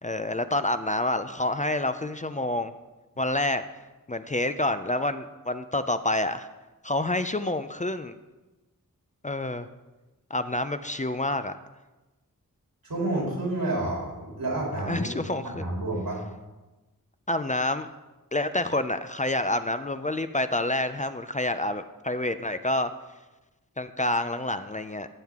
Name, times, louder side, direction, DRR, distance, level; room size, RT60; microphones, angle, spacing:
voice 1, 0.0-2.7 3.2-3.6 4.1-6.5 6.8-8.2 9.2-9.7 10.3-11.6 14.9-15.7 17.3-17.9 18.3-22.9 23.8-25.1, left 1 dB, 20° left, 10 dB, 0.4 m, -28 dB
voice 2, 12.8-16.2, right 2 dB, 90° right, -3 dB, 3.4 m, -30 dB
15.0 x 7.3 x 3.6 m, 1.1 s
wide cardioid pair, 80°, 34 cm